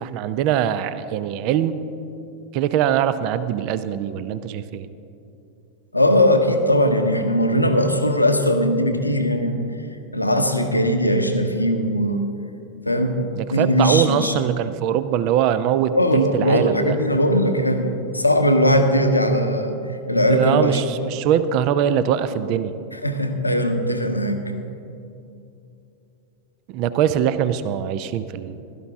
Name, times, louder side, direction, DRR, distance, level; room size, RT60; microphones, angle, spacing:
voice 1, 0.0-1.8 2.5-4.9 13.3-17.0 20.3-22.7 26.7-28.6, right 10 dB, 45° right, 13 dB, 0.5 m, -22 dB
voice 2, 5.9-9.6 10.1-12.2 12.9-14.4 15.9-19.8 20.1-20.8 22.9-24.4, equal, 85° left, 6 dB, 0.9 m, -19 dB
16.0 x 12.5 x 3.6 m, 2.7 s
figure-of-eight pair, 90°, 0 cm